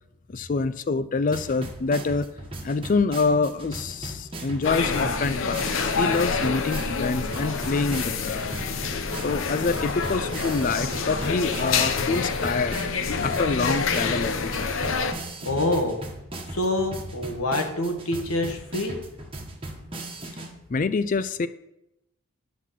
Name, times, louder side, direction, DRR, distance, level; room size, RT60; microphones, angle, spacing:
voice 1, 0.3-2.3 2.6-8.6 9.2-12.8 13.2-14.7 20.7-21.5, left 4 dB, 35° left, 14 dB, 0.4 m, -26 dB
sound 1, 1.3-20.5, right 1 dB, 25° right, 1.3 m, -38 dB
sound 2, 4.6-15.1, left 5 dB, 65° left, 0.8 m, -27 dB
voice 2, 15.4-16.0 16.5-19.0, left 1 dB, 80° left, 4 dB, 1.7 m, -26 dB
10.5 x 6.1 x 5.9 m, 0.87 s
head